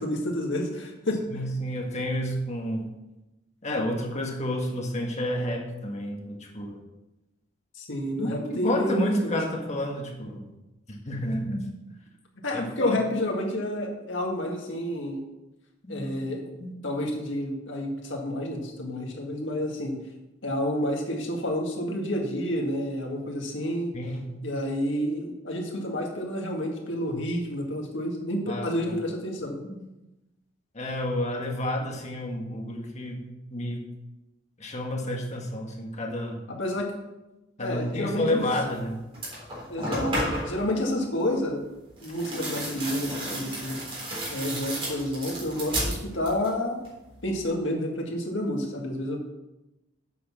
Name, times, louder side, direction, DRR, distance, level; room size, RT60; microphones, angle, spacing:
voice 1, 0.0-1.2 7.8-9.4 12.4-15.2 15.9-16.4 16.8-20.0 20.4-23.9 24.4-29.6 36.5-36.9 37.6-38.5 39.7-41.6 42.0-43.8 44.3-46.8 47.2-49.2, left 1 dB, 70° left, 0 dB, 2.0 m, -29 dB
voice 2, 1.3-2.9 3.6-6.8 8.2-10.4 10.9-11.7 12.5-13.0 15.8-16.3 16.6-16.8 23.9-24.4 28.5-29.0 29.6-29.8 30.7-33.8 34.6-36.4 37.6-39.0, left 1 dB, 35° left, 1 dB, 1.6 m, -30 dB
sound 1, 38.7-38.8 39.1-40.6 42.0-46.6 46.8-47.4, right 1 dB, 30° right, 3.8 m, -33 dB
8.4 x 6.4 x 6.1 m, 0.99 s
head